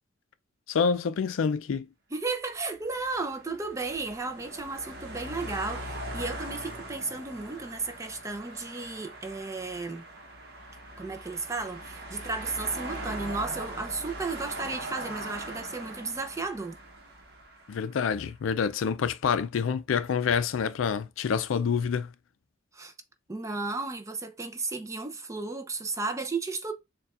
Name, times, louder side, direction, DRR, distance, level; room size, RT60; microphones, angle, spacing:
voice 1, 0.7-1.9 17.7-22.1, left 6 dB, 85° left, 0.4 m, -27 dB
voice 2, 2.1-10.1 11.0-16.8 22.7-22.9 23.3-26.7, right 3 dB, 15° right, 0.5 m, -34 dB
sound 1, 2.7-18.1, right 1 dB, 55° right, 0.9 m, -41 dB
6.7 x 2.3 x 2.4 m
head